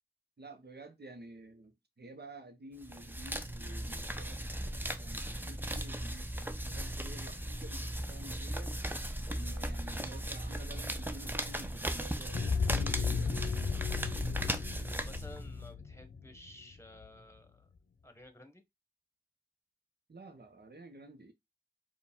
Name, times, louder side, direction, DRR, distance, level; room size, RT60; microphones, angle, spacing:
voice 1, 0.4-8.7 9.3-13.7 20.1-21.3, right 1 dB, 75° right, 0.7 m, -51 dB
sound 1, 2.8-15.7, right 1 dB, 10° right, 0.5 m, -37 dB
sound 2, 12.3-17.1, left 5 dB, 75° left, 0.5 m, -34 dB
voice 2, 14.9-17.7 18.0-18.6, left 1 dB, 15° left, 0.9 m, -54 dB
4.6 x 2.2 x 3.5 m
wide cardioid pair, 40°, 17 cm